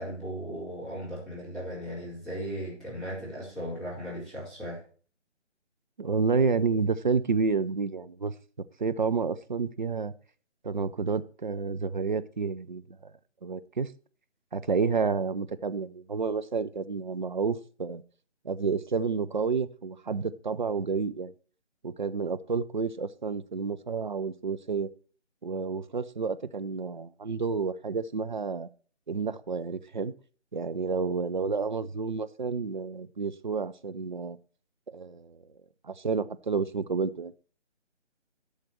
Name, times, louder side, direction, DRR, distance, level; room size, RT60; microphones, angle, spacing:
voice 1, 0.0-4.8, equal, ahead, -12 dB, 4.2 m, -37 dB
voice 2, 6.0-8.3 8.8-10.1 10.6-12.8 13.4-13.9 14.5-18.0 18.4-21.3 21.8-24.9 25.4-28.7 29.1-30.1 30.5-34.4 34.9-35.4 35.9-37.3, right 5 dB, 40° right, 12 dB, 0.5 m, -30 dB
12.0 x 6.6 x 4.5 m, 0.41 s
figure-of-eight pair, 150°, 36 cm